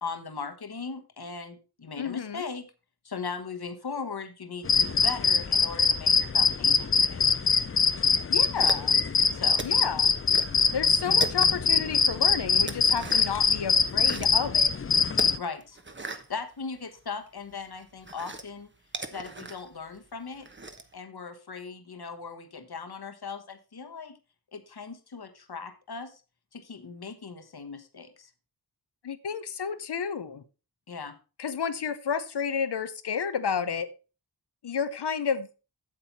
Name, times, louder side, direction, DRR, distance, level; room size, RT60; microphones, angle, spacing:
voice 1, 0.0-2.7 3.0-7.2 9.3-9.7 15.4-15.8 16.1-18.7 19.1-20.5 20.9-24.2 24.5-26.2 26.5-28.3 30.9-31.2, left 5 dB, 70° left, 8 dB, 1.4 m, -38 dB
voice 2, 2.0-2.4 8.3-8.9 9.6-10.1 10.7-14.7 29.0-30.4 31.4-33.9 34.6-35.5, left 6 dB, 90° left, 13 dB, 0.9 m, -31 dB
sound 1, 4.7-15.4, left 5 dB, 35° left, 0.5 m, -23 dB
sound 2, 8.6-9.2 9.6-10.6 10.8-11.8 12.2-13.4 13.8-14.4 15.1-17.1 17.5-20.9, right 3 dB, 30° right, 1.1 m, -39 dB
8.8 x 7.6 x 4.1 m, 0.31 s
wide cardioid pair, 55°, 39 cm